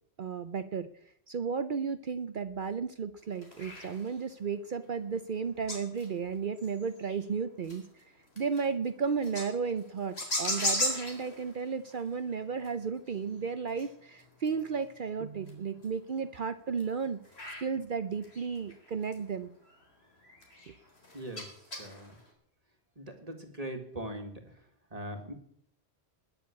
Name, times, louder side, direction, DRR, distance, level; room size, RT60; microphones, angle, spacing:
voice 1, 0.2-0.9 1.3-7.8 8.4-17.2 17.6-19.5 20.7-20.8, right 5 dB, 55° right, 12 dB, 0.8 m, -33 dB
sound 1, 3.2-4.2 4.6-7.2 7.5-22.3, left 1 dB, 65° left, 4.0 m, -39 dB
voice 2, 21.1-21.4 21.8-22.1 23.0-24.3 24.9-25.3, right 1 dB, 35° right, 4 dB, 1.9 m, -40 dB
20.0 x 6.9 x 8.5 m, 0.68 s
omnidirectional pair, 1.1 m